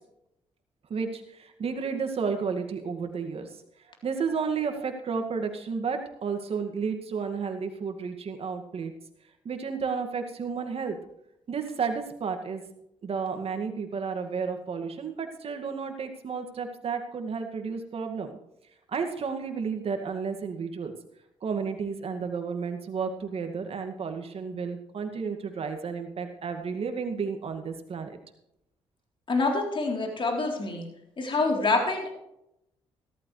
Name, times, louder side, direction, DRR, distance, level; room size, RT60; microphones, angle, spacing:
voice 1, 0.9-3.5 4.0-8.9 9.4-11.0 11.5-12.6 13.0-18.3 18.9-20.9 21.4-28.2, right 5 dB, 55° right, 6 dB, 2.2 m, -32 dB
voice 2, 29.3-30.9 31.2-32.1, left 3 dB, 45° left, 1 dB, 3.8 m, -26 dB
15.0 x 13.5 x 3.3 m, 0.81 s
supercardioid pair, 50°, 12 cm